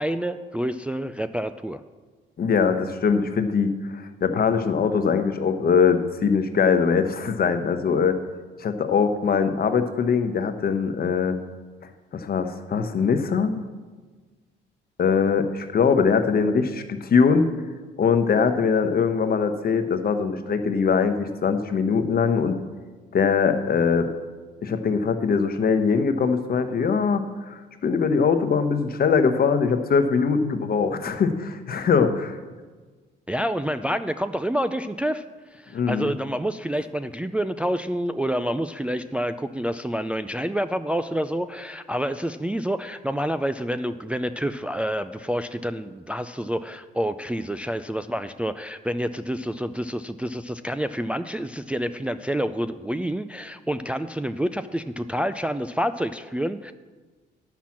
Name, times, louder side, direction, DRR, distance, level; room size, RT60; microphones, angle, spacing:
voice 1, 0.0-1.8 33.3-35.2 35.5-56.7, equal, 5° right, 10 dB, 0.3 m, -28 dB
voice 2, 2.4-8.2 8.6-11.4 12.1-13.6 15.0-17.5 18.0-22.6 23.1-24.1 24.6-32.4 35.7-36.1, left 5 dB, 50° left, 8 dB, 1.0 m, -22 dB
10.0 x 5.9 x 7.4 m, 1.4 s
cardioid pair, 90°, 20 cm